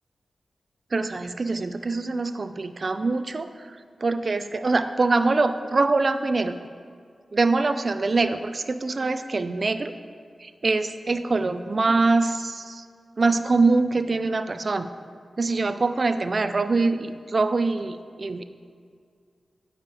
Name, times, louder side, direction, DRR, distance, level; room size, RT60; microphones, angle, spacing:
voice 1, 0.9-6.6 7.3-9.9 10.4-12.9 13.2-14.9 15.4-18.4, right 3 dB, 45° right, 11 dB, 0.5 m, -24 dB
9.8 x 5.0 x 6.8 m, 2.1 s
wide cardioid pair, 100°, 0 cm